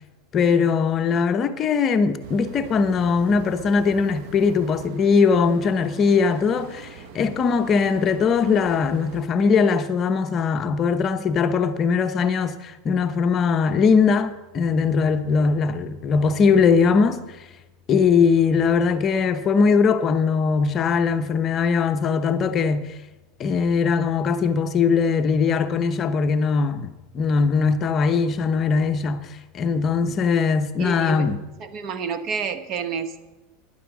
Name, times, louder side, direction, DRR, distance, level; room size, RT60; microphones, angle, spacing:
voice 1, 0.3-17.4 17.9-22.9 23.4-31.4, left 5 dB, 35° left, 0.8 m, -20 dB
sound 1, 2.2-9.2, right 6 dB, 60° right, 1.2 m, -42 dB
voice 2, 30.8-31.3 31.6-33.2, right 5 dB, 45° right, 1.1 m, -29 dB
11.5 x 10.5 x 6.1 m
supercardioid pair, 130°, 0 cm